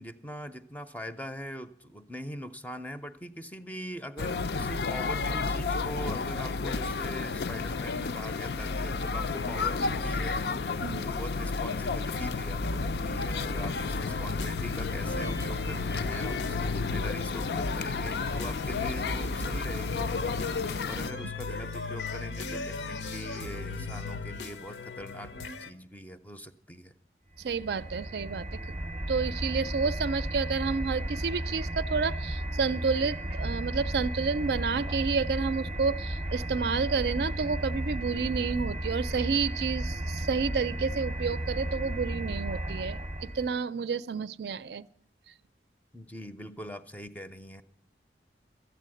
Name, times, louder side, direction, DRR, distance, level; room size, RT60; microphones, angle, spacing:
voice 1, 0.0-10.5 11.0-20.1 20.9-25.3 25.6-26.9 45.9-47.6, equal, 10° left, 10 dB, 0.5 m, -42 dB
sound 1, 4.2-21.1, left 4 dB, 65° left, 0.5 m, -32 dB
sound 2, 12.6-25.7, left 3 dB, 85° left, 0.8 m, -37 dB
sound 3, 27.4-43.6, right 1 dB, 30° right, 0.7 m, -34 dB
voice 2, 27.4-28.8 29.1-43.0 43.3-44.9, right 5 dB, 70° right, 14 dB, 0.4 m, -30 dB
13.0 x 9.1 x 7.7 m, 0.64 s
head